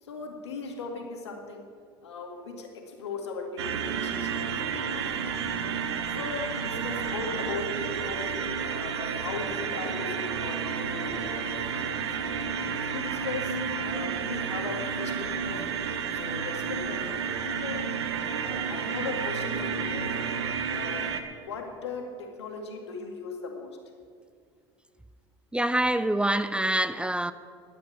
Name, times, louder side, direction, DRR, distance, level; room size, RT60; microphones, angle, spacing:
voice 1, 0.0-1.7 2.0-5.3 6.1-12.1 12.9-15.6 16.1-17.9 18.4-20.2 20.7-21.1 21.4-23.8, left 4 dB, 85° left, 2.1 m, -38 dB
sound 1, 3.6-21.2, right 6 dB, 80° right, 0.9 m, -31 dB
voice 2, 25.5-27.3, right 1 dB, 5° right, 0.5 m, -25 dB
11.5 x 8.6 x 8.6 m
hypercardioid pair, 75°, 14 cm